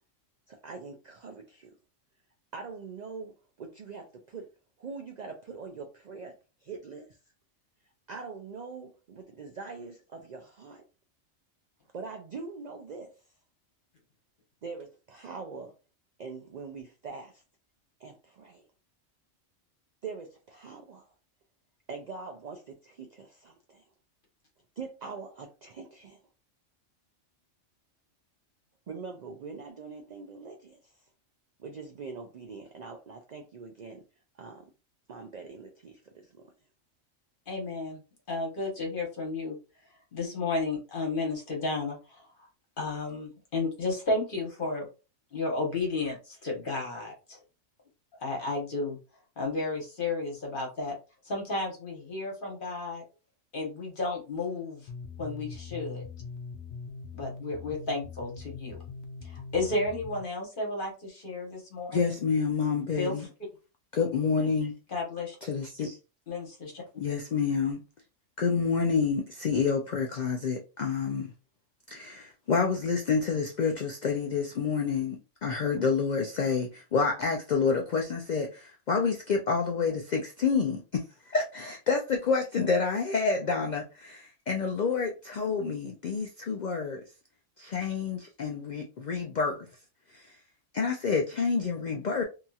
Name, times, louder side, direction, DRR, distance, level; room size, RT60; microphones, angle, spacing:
voice 1, 0.5-1.7 2.5-4.5 4.8-6.3 6.6-7.1 8.1-10.8 11.9-13.1 14.6-15.7 16.2-17.4 18.0-18.7 20.0-21.1 21.9-23.9 24.8-26.2 28.9-30.9 31.6-34.0 34.3-34.7 35.1-36.5, right 4 dB, 90° right, 0.3 m, -43 dB
voice 2, 37.5-38.0 38.3-39.5 40.1-42.3 42.8-44.9 45.3-47.4 48.2-49.0 49.4-50.9 51.2-53.0 53.5-54.9 55.2-56.0 57.1-58.8 59.2-62.1 63.0-63.2 64.9-65.4 66.3-67.1, left 3 dB, 45° left, 1.1 m, -32 dB
sound 1, 54.9-60.2, left 4 dB, 65° left, 0.7 m, -42 dB
voice 3, 61.9-63.3 63.9-64.7 65.4-66.0 67.0-67.8 68.4-71.3 71.9-87.0 87.6-89.6 90.1-90.2 90.7-92.2, left 5 dB, 85° left, 0.4 m, -28 dB
2.8 x 2.7 x 2.3 m
omnidirectional pair, 1.3 m